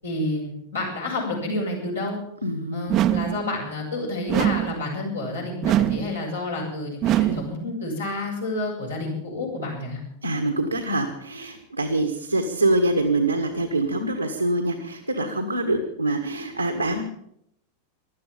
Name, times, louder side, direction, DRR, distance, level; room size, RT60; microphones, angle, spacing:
voice 1, 0.0-2.2 2.7-10.0, left 2 dB, 75° left, -3 dB, 6.9 m, -29 dB
voice 2, 2.4-2.9 10.2-17.0, right 2 dB, 85° right, 3 dB, 1.6 m, -25 dB
sound 1, 2.9-3.5 4.3-4.8 5.6-6.2 7.0-7.6, right 13 dB, 35° right, 0.7 m, -22 dB
16.5 x 12.0 x 7.2 m, 0.73 s
figure-of-eight pair, 90°, 0 cm